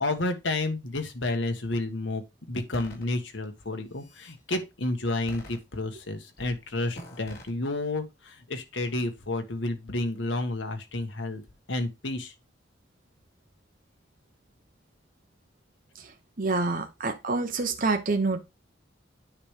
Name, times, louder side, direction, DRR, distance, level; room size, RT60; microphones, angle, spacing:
voice 1, 0.0-11.4 11.7-12.3, left 2 dB, 75° left, 1.5 m, -31 dB
sound 1, 2.7-3.0 3.7-4.4 5.3-6.0 6.4-6.6 6.9-7.5, left 1 dB, 55° left, 3.7 m, -45 dB
voice 2, 16.4-18.4, right 3 dB, 50° right, 1.0 m, -27 dB
9.6 x 3.4 x 5.0 m
head